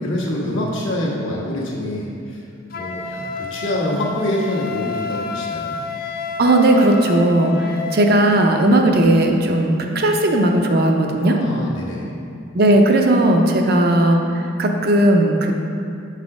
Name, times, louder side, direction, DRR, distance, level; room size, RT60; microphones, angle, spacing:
voice 1, 0.0-2.4 2.7-5.7 11.2-12.1, left 1 dB, 75° left, -4 dB, 1.4 m, -25 dB
Wind instrument woodwind instrument, 2.7-8.2, left 5 dB, 45° left, 0.4 m, -29 dB
voice 2, 6.4-11.4 12.5-14.2 14.6-15.5, right 1 dB, 50° right, 2 dB, 0.6 m, -16 dB
7.1 x 4.1 x 4.8 m, 2.5 s
head